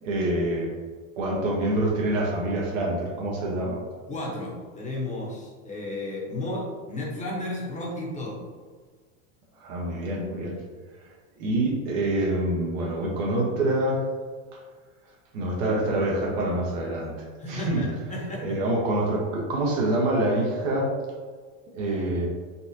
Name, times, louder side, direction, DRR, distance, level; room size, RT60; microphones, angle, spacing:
voice 1, 0.0-0.7 1.2-3.8 9.6-10.6 11.4-14.1 14.5-14.6 15.3-17.1 17.5-17.9 18.4-21.0 21.7-22.3, right 1 dB, 75° right, -2 dB, 1.1 m, -26 dB
voice 2, 4.1-8.4 17.4-18.6, left 1 dB, 20° left, -4 dB, 0.8 m, -33 dB
4.1 x 2.4 x 2.7 m, 1.5 s
supercardioid pair, 125°, 39 cm